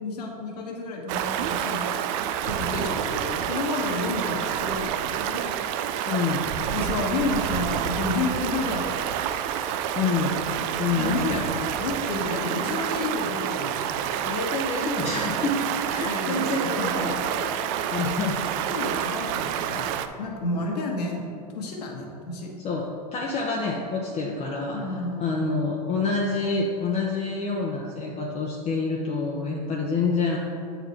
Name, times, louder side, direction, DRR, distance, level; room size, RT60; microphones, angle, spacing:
voice 1, 0.0-5.6 6.7-9.2 11.0-14.1 16.0-17.5 18.7-21.2 21.5-22.5 24.7-25.2, left 3 dB, 80° left, 0 dB, 1.2 m, -31 dB
Stream, 1.1-20.1, right 9 dB, 55° right, 0.4 m, -28 dB
voice 2, 6.0-6.4 9.9-10.4 10.8-11.4 12.3-12.4 14.2-15.6 15.8-17.2 17.9-18.4 22.6-24.8 25.2-30.4, left 4 dB, 30° left, -2 dB, 0.8 m, -27 dB
8.0 x 4.2 x 4.4 m, 2.5 s
hypercardioid pair, 95°, 20 cm